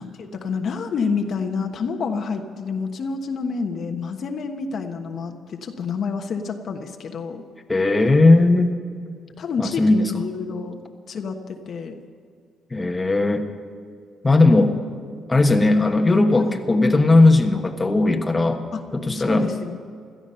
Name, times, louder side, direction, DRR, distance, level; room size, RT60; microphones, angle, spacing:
voice 1, 0.0-7.4 9.4-10.8 11.1-11.4 11.7-12.0 16.5-16.6 18.7-18.8 19.1-19.8, left 5 dB, 60° left, 4 dB, 1.3 m, -28 dB
voice 2, 7.7-8.8 9.6-10.1 12.7-13.4 14.2-14.7 15.3-18.6 18.9-19.5, left 2 dB, 20° left, 3 dB, 1.4 m, -17 dB
17.0 x 12.5 x 5.7 m, 2.2 s
cardioid pair, 90°, 0 cm